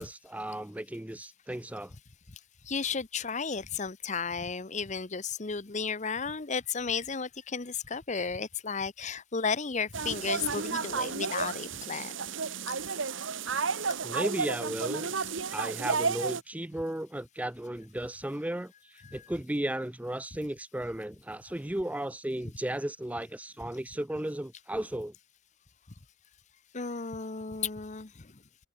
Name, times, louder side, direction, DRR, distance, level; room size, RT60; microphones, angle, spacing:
voice 1, 0.0-1.9 14.0-15.1 15.5-25.1, right 1 dB, 5° right, 0.5 m, -35 dB
voice 2, 2.7-12.2 19.0-19.3 26.7-28.1, left 5 dB, 40° left, 0.9 m, -33 dB
sound 1, 9.9-16.4, right 5 dB, 85° right, 1.6 m, -32 dB
head